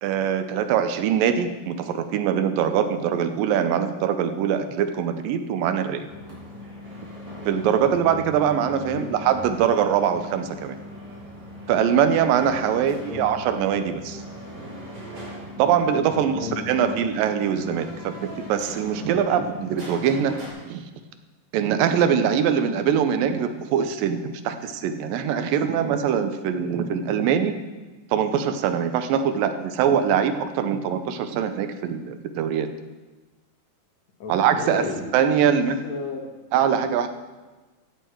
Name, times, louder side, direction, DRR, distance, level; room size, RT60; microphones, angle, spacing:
voice 1, 0.0-6.1 7.5-10.8 11.7-14.2 15.6-20.4 20.7-20.8 21.5-27.6 28.1-32.7 34.3-34.9 35.1-35.8 36.5-37.1, right 8 dB, 85° right, 9 dB, 2.5 m, -23 dB
sound 1, 6.0-20.5, left 1 dB, 30° right, 4.0 m, -39 dB
voice 2, 8.8-9.2 12.9-13.3 16.1-17.0 34.2-35.1 35.5-36.4, left 4 dB, 60° left, 1 dB, 2.4 m, -34 dB
15.5 x 8.3 x 4.6 m, 1.2 s
omnidirectional pair, 3.9 m